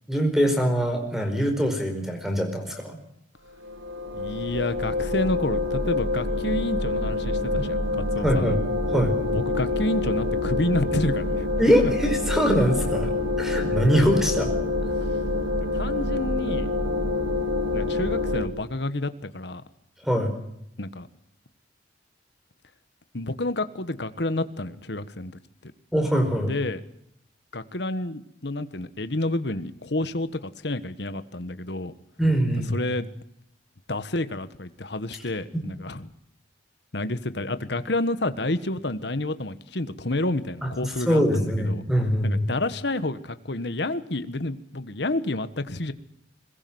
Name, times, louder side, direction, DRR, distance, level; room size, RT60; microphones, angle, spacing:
voice 1, 0.1-3.0 8.2-8.6 8.9-9.1 11.6-13.1 13.4-14.5 20.0-20.3 25.9-26.5 32.2-32.8 40.6-40.7 41.1-42.4, equal, ahead, 5 dB, 5.0 m, -23 dB
sound 1, 3.6-18.5, left 2 dB, 85° right, 2.2 m, -26 dB
voice 2, 4.1-8.6 9.3-11.5 15.7-16.7 17.7-19.6 20.8-21.1 23.1-25.7 26.4-26.8 27.5-31.9 32.7-33.1 33.9-36.1 36.9-41.8 42.2-45.9, left 2 dB, 60° left, 12 dB, 1.4 m, -29 dB
22.0 x 21.5 x 7.9 m, 0.76 s
head